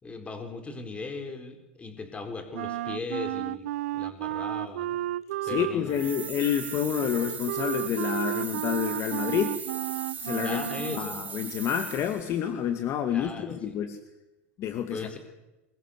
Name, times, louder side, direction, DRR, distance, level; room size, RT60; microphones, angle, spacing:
voice 1, 0.0-3.7 3.9-5.0 5.5-6.0 10.4-11.2 13.1-13.8 14.9-15.2, left 3 dB, 15° left, 6 dB, 4.6 m, -38 dB
Wind instrument woodwind instrument, 2.5-11.1, right 15 dB, 80° right, 0.7 m, -33 dB
voice 2, 5.4-9.6 10.2-10.6 10.9-14.0 14.6-15.1, left 9 dB, 40° left, 7 dB, 2.2 m, -29 dB
sound 1, 5.9-12.3, right 6 dB, 25° right, 3.4 m, -39 dB
27.0 x 22.5 x 6.7 m, 1.0 s
supercardioid pair, 120°, 7 cm